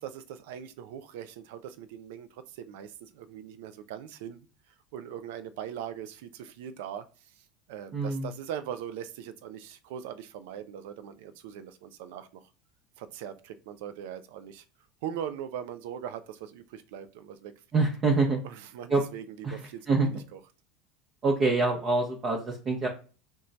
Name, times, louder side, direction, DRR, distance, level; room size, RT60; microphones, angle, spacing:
voice 1, 0.0-12.5 13.0-14.6 15.0-17.5 18.4-20.4, right 9 dB, 65° right, 0.4 m, -41 dB
voice 2, 7.9-8.3 17.7-18.4 18.9-19.0 19.4-19.6 19.9-20.2 21.2-22.9, right 3 dB, 35° right, 0.7 m, -25 dB
3.0 x 2.2 x 3.9 m
hypercardioid pair, 80°, 0 cm